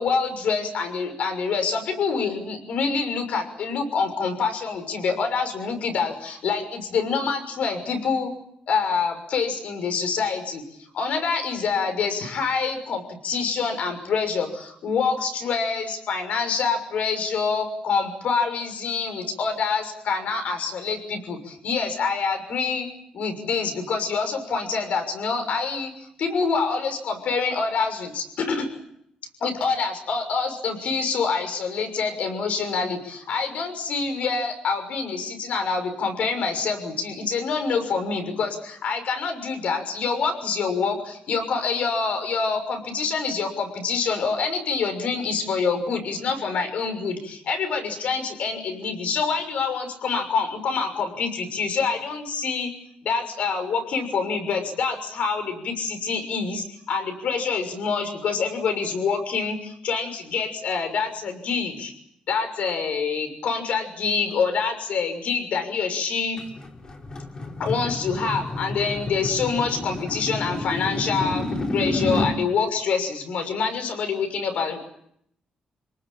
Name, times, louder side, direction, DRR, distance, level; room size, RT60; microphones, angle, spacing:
voice 1, 0.0-8.3 8.7-10.6 10.9-22.9 23.1-25.9 26.2-28.8 29.4-52.7 53.0-61.9 62.3-66.4 67.6-71.5 71.7-74.9, left 5 dB, 70° left, 7 dB, 6.4 m, -26 dB
sound 1, 66.4-72.4, left 2 dB, 35° left, 3.7 m, -29 dB
28.5 x 19.0 x 8.9 m, 0.73 s
wide cardioid pair, 145°, 3 cm